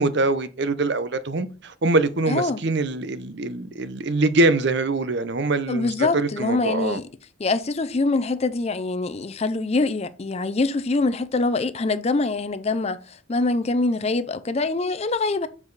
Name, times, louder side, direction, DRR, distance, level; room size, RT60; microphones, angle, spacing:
voice 1, 0.0-7.0, right 2 dB, 55° right, 0.6 m, -23 dB
voice 2, 2.3-2.6 5.7-7.0 7.4-15.5, left 3 dB, 30° left, 0.4 m, -24 dB
7.3 x 4.8 x 4.0 m
head